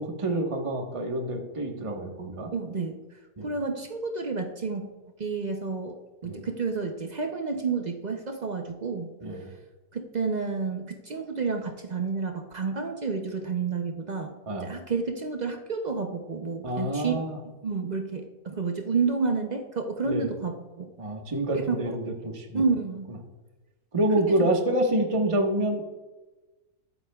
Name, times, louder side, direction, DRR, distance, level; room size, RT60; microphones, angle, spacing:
voice 1, 0.0-2.5 3.4-3.5 6.2-6.5 9.2-9.5 14.5-14.7 16.6-17.4 20.0-20.3 21.0-22.6 23.9-25.8, right 1 dB, 20° right, 1 dB, 1.2 m, -27 dB
voice 2, 2.5-3.0 3.4-4.9 5.2-9.1 9.9-14.3 14.6-17.2 17.6-20.9 21.5-22.0 22.5-23.1 24.3-24.5, right 4 dB, 60° right, 4 dB, 0.4 m, -30 dB
22.0 x 8.0 x 2.3 m, 1.2 s
omnidirectional pair, 1.8 m